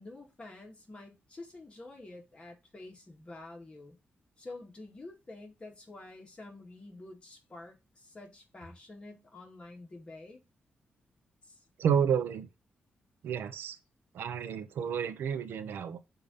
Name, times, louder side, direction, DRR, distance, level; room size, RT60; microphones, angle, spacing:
voice 1, 0.0-4.0 4.4-10.4 11.4-11.6, left 2 dB, 30° left, 2.1 m, -48 dB
voice 2, 11.8-12.5 13.2-13.8 14.1-16.0, right 7 dB, 90° right, 0.8 m, -30 dB
6.7 x 2.9 x 5.4 m
cardioid pair, 80°, 4 cm